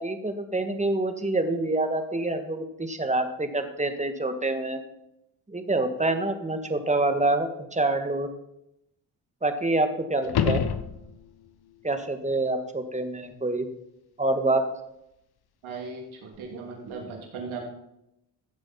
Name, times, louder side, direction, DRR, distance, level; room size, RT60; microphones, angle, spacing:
voice 1, 0.0-4.8 5.5-8.3 9.4-10.6 11.8-13.7 14.2-14.6, right 2 dB, 15° right, 7 dB, 1.8 m, -26 dB
sound 1, 10.2-11.5 16.3-16.4, left 8 dB, 50° left, 1.1 m, -27 dB
voice 2, 15.6-17.6, right 4 dB, 80° right, 1 dB, 3.1 m, -37 dB
15.5 x 7.7 x 4.4 m, 0.82 s
supercardioid pair, 55°, 47 cm